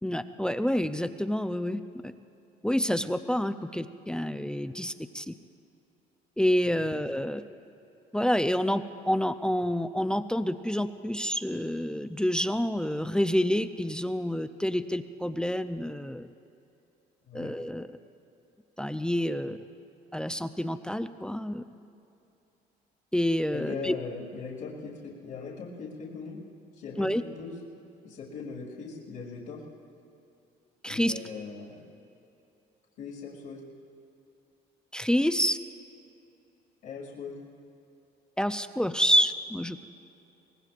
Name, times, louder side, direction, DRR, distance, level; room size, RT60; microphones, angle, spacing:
voice 1, 0.0-2.1 2.6-5.3 6.4-7.4 8.1-16.3 17.3-17.9 18.8-19.6 20.1-21.6 23.1-24.0 27.0-27.2 30.8-31.1 34.9-35.6 38.4-39.9, equal, 5° left, 9 dB, 0.5 m, -28 dB
voice 2, 6.8-7.2 17.3-17.5 23.5-26.4 26.7-27.5 28.0-29.6 30.8-31.8 33.0-33.6 36.8-37.3, left 5 dB, 75° left, -7 dB, 2.5 m, -40 dB
23.5 x 19.0 x 2.5 m, 2.8 s
cardioid pair, 110°, 17 cm